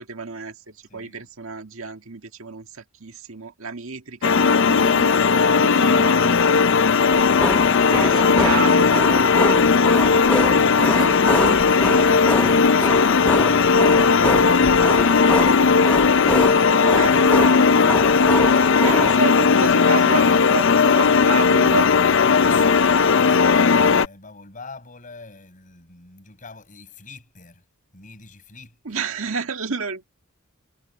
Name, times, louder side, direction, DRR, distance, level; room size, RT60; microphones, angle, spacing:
voice 1, 0.0-6.6 7.9-8.9 10.8-11.7 16.9-18.1 18.4-21.9 28.8-30.1, right 4 dB, 75° right, 1.9 m, -31 dB
voice 2, 0.9-1.3 5.7-6.0 7.6-8.3 10.6-15.9 22.1-27.6 27.9-29.0, left 4 dB, 40° left, 7.4 m, -43 dB
sound 1, 4.2-24.1, left 5 dB, 60° left, 0.5 m, -17 dB
sound 2, 7.1-19.2, left 1 dB, 5° left, 0.8 m, -26 dB
head